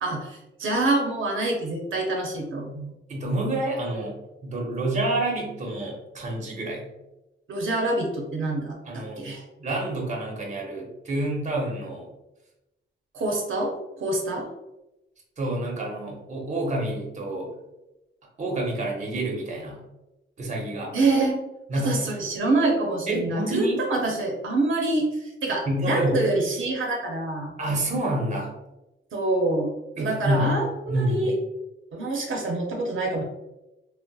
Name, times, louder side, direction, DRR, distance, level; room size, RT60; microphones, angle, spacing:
voice 1, 0.0-2.9 7.5-9.4 13.1-13.7 14.0-14.5 20.9-21.4 21.7-27.5 29.1-29.7 30.0-31.3 31.9-33.2, right 2 dB, 75° right, 0 dB, 0.6 m, -26 dB
voice 2, 3.1-4.2 4.4-6.9 8.9-9.2 9.6-12.1 15.4-17.5 18.4-19.8 20.4-20.9 21.7-22.0 23.1-23.8 25.7-26.2 27.6-28.5 30.0-30.5 30.9-31.3, right 1 dB, 35° right, -1 dB, 0.6 m, -28 dB
3.9 x 2.1 x 2.2 m, 0.95 s
wide cardioid pair, 165°, 21 cm